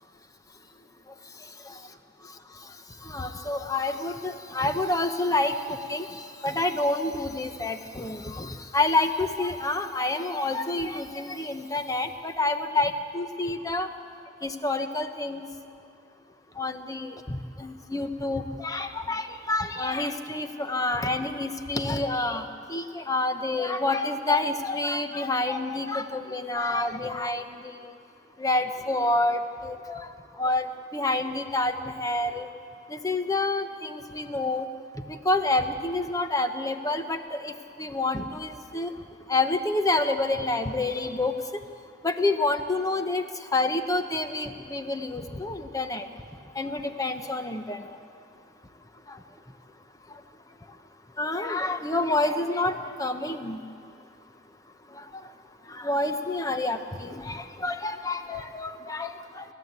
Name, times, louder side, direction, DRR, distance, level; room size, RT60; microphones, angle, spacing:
voice 1, 3.0-6.1 6.4-13.9 14.4-15.4 16.6-27.4 27.8-27.9 28.4-30.1 30.4-30.7 30.9-32.5 32.9-34.7 35.1-38.9 39.3-41.3 42.0-43.2 43.5-46.1 46.6-47.8 49.1-49.2 51.2-53.6 55.7-59.4, left 2 dB, 20° left, 7 dB, 1.0 m, -28 dB
29.0 x 13.0 x 8.2 m, 2.5 s
head